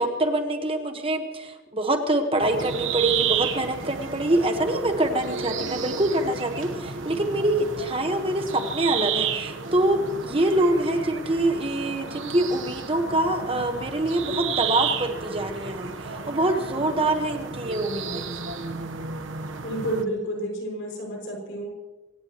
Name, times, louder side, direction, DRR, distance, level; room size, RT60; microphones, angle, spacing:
voice 1, 0.0-15.9 16.3-18.3, right 1 dB, 25° right, 5 dB, 1.3 m, -25 dB
sound 1, 2.4-20.0, right 6 dB, 70° right, 1.2 m, -32 dB
voice 2, 19.6-21.7, right 1 dB, 65° left, 0 dB, 6.1 m, -30 dB
25.0 x 18.5 x 3.1 m, 1.1 s
head